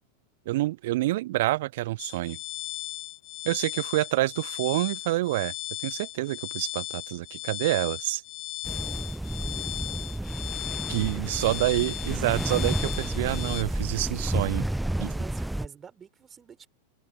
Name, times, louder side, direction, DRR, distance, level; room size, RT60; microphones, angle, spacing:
voice 1, 0.5-2.4 3.4-5.5 5.8-8.2 10.9-14.7 15.0-15.1, right 17 dB, 55° right, 0.6 m, -27 dB
sound 1, 2.0-13.6, left 20 dB, 40° left, 1.9 m, -37 dB
sound 2, 8.7-15.7, right 1 dB, 5° right, 0.6 m, -31 dB
voice 2, 11.1-11.8 15.1-16.7, right 7 dB, 20° right, 6.0 m, -49 dB
figure-of-eight pair, 90°, 0 cm